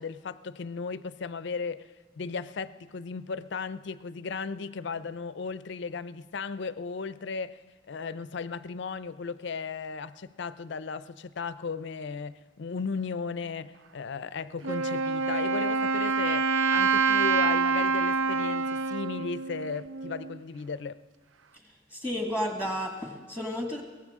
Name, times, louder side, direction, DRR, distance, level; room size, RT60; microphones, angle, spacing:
voice 1, 0.0-1.9 2.2-16.5 16.7-21.0, left 5 dB, 60° left, 0.5 m, -36 dB
Wind instrument woodwind instrument, 14.6-20.4, right 4 dB, 75° right, 0.5 m, -26 dB
voice 2, 21.9-23.8, equal, 10° right, 1.6 m, -32 dB
22.5 x 17.5 x 3.6 m
head